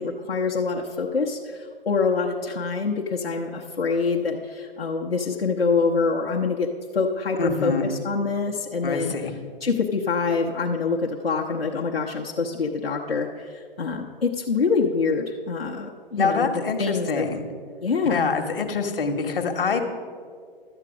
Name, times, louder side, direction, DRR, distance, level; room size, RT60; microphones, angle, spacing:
voice 1, 0.0-9.1 9.6-16.5 16.8-17.3 17.8-18.3, left 4 dB, 85° left, -2 dB, 0.8 m, -25 dB
voice 2, 7.4-7.9 8.8-9.3 16.2-17.4 18.1-19.8, left 5 dB, 65° left, 6 dB, 1.2 m, -25 dB
12.0 x 7.4 x 4.9 m, 2.1 s
figure-of-eight pair, 115°, 29 cm